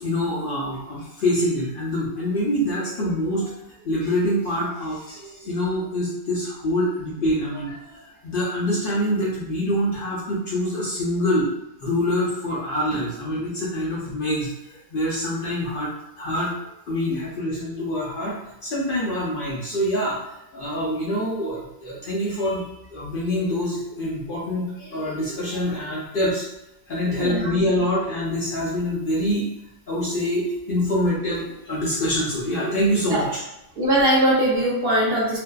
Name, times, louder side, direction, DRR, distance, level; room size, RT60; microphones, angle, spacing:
voice 1, 0.0-3.5 3.8-11.5 11.8-15.9 16.2-16.5 16.9-18.4 18.6-26.5 26.9-29.5 29.9-33.4, left 1 dB, 60° left, -7 dB, 0.6 m, -25 dB
voice 2, 33.8-35.4, right 1 dB, 60° right, -5 dB, 0.7 m, -20 dB
2.5 x 2.1 x 2.2 m, 0.90 s
omnidirectional pair, 1.3 m